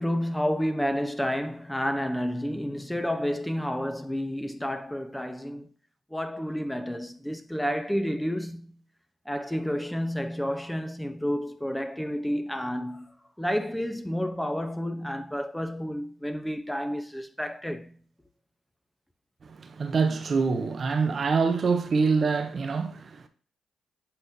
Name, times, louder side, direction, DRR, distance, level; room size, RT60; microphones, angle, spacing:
voice 1, 0.0-5.7 6.1-8.8 9.3-13.1 13.4-18.0, equal, 5° left, 0.8 m, -30 dB
voice 2, 19.4-23.3, right 4 dB, 50° right, 0.7 m, -25 dB
8.3 x 4.3 x 2.7 m
supercardioid pair, 55°, 0 cm